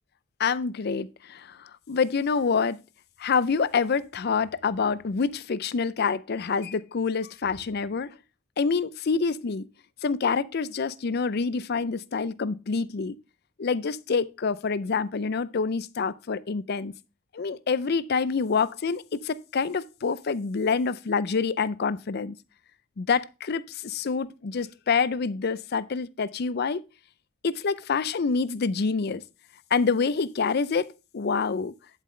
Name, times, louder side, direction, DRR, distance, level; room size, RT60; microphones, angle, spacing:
voice 1, 0.4-2.8 3.2-8.1 8.6-9.7 10.0-13.2 13.6-16.9 17.3-22.4 23.0-26.8 27.4-29.2 29.7-31.7, left 5 dB, 55° left, 0.5 m, -27 dB
11.5 x 7.5 x 3.2 m
head